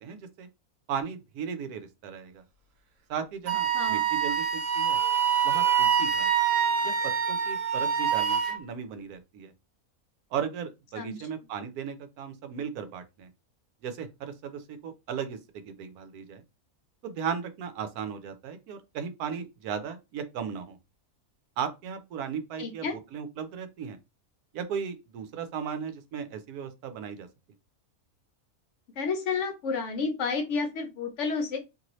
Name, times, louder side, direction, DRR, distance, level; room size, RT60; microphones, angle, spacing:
voice 1, 0.0-0.5 0.9-2.4 3.1-5.0 5.4-6.3 6.8-9.5 10.3-13.3 13.8-16.4 17.0-20.8 21.6-24.0 24.5-27.3, right 7 dB, 85° right, 1.1 m, -36 dB
Wind instrument woodwind instrument, 3.5-8.6, right 8 dB, 65° right, 1.0 m, -25 dB
voice 2, 22.6-22.9 29.0-31.6, left 4 dB, 65° left, 0.9 m, -30 dB
2.8 x 2.7 x 3.0 m
omnidirectional pair, 1.6 m